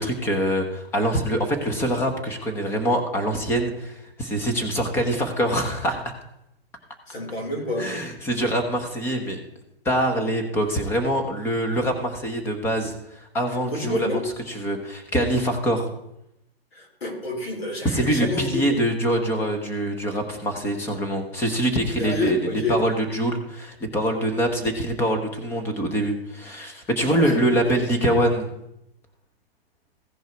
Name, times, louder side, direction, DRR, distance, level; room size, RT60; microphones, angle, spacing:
voice 1, 0.0-6.1 7.8-9.4 9.8-13.0 13.3-14.2 14.5-15.9 17.8-28.5, right 1 dB, 10° left, 5 dB, 0.9 m, -24 dB
voice 2, 7.1-7.9 13.7-14.2 16.7-18.7 22.0-22.8 27.1-27.8, left 2 dB, 90° left, -1 dB, 4.5 m, -28 dB
15.5 x 5.4 x 4.5 m, 0.81 s
hypercardioid pair, 160°, 30 cm